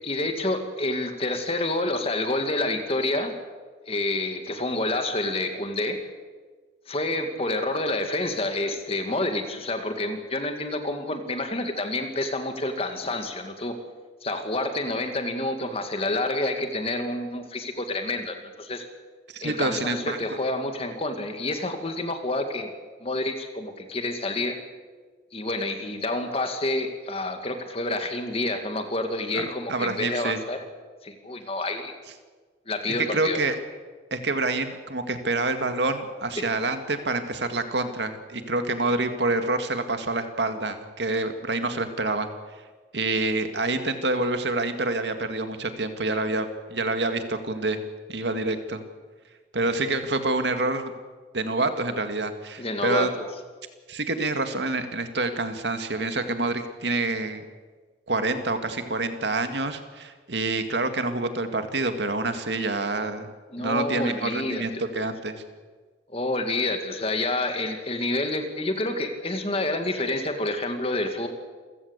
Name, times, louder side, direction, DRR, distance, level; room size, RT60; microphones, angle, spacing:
voice 1, 0.0-3.3 3.9-6.0 6.9-13.7 14.2-18.9 19.4-22.7 23.0-24.6 25.3-30.6 31.0-31.9 32.7-33.4 36.4-36.5 52.6-53.1 63.5-64.8 66.1-71.3, left 2 dB, 35° left, 6 dB, 2.3 m, -28 dB
voice 2, 19.3-20.2 29.3-30.4 32.9-33.6 34.1-42.3 42.9-47.8 48.1-48.8 49.5-50.9 51.3-53.1 53.9-57.4 58.1-63.3 63.6-65.4, right 2 dB, 75° right, 8 dB, 2.2 m, -27 dB
28.5 x 15.5 x 8.3 m, 1.4 s
head